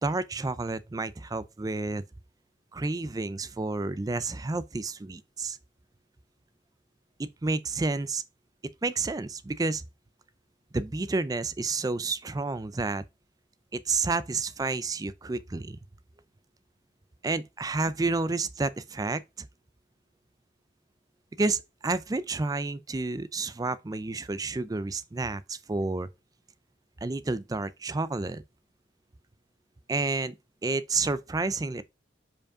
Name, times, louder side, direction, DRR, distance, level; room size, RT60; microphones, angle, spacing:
voice 1, 0.0-2.0 2.7-5.6 7.2-8.2 8.8-9.8 10.7-13.0 13.7-15.8 17.2-19.5 21.4-26.1 27.0-28.4 29.9-30.3 30.6-31.8, right 3 dB, 20° right, 0.4 m, -30 dB
5.1 x 4.8 x 4.8 m
head